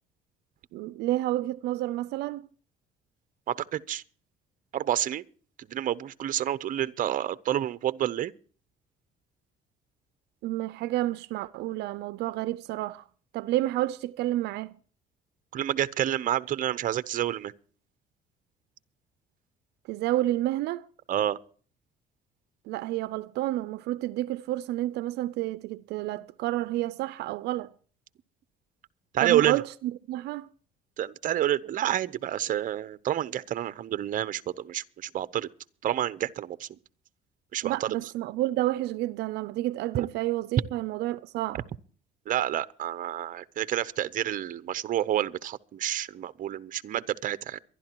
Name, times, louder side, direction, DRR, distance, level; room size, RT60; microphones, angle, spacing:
voice 1, 0.7-2.5 10.4-13.0 13.3-14.8 19.9-20.9 22.7-27.7 29.2-30.5 37.6-41.6, right 15 dB, 80° right, 0.5 m, -30 dB
voice 2, 3.5-4.0 4.7-5.2 5.7-8.3 15.5-17.5 21.1-21.4 29.1-29.6 31.0-35.5 35.8-36.8 37.5-38.0 39.9-40.1 42.3-47.6, right 12 dB, 50° right, 0.8 m, -29 dB
23.5 x 11.5 x 3.0 m
cardioid pair, 110°, 17 cm